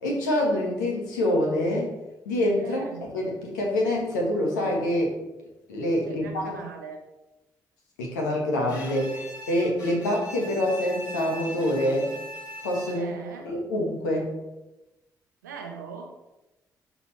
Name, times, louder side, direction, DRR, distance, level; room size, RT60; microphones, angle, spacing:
voice 1, 0.0-2.0 2.2-2.9 3.1-5.1 5.7-6.6 8.0-12.1 12.6-13.1 13.4-14.4, left 1 dB, 85° left, 0 dB, 1.3 m, -26 dB
voice 2, 2.6-3.0 6.1-7.0 9.9-10.0 12.9-13.5 15.4-16.1, right 5 dB, 90° right, 3 dB, 0.8 m, -39 dB
Bowed string instrument, 8.7-13.3, equal, 45° left, 2.5 m, -40 dB
11.0 x 4.1 x 3.1 m, 0.99 s
hypercardioid pair, 40°, 9 cm